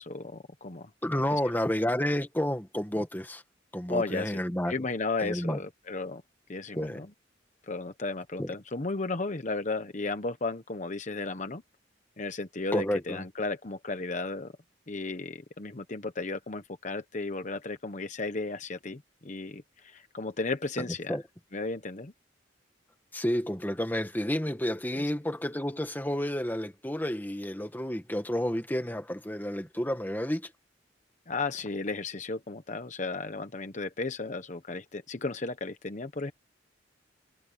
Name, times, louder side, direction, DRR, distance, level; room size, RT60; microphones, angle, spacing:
voice 1, 0.0-0.9 1.3-1.4 3.9-4.4 4.7-6.2 6.5-7.1 7.7-11.6 12.2-14.5 14.9-21.2 21.5-22.1 24.9-25.1 31.3-36.3, left 3 dB, 40° left, 1.0 m, -34 dB
voice 2, 1.0-3.4 3.7-4.7 5.2-5.6 6.8-7.0 8.4-8.5 12.7-13.2 21.1-21.2 23.1-30.5, equal, 10° left, 1.8 m, -30 dB
head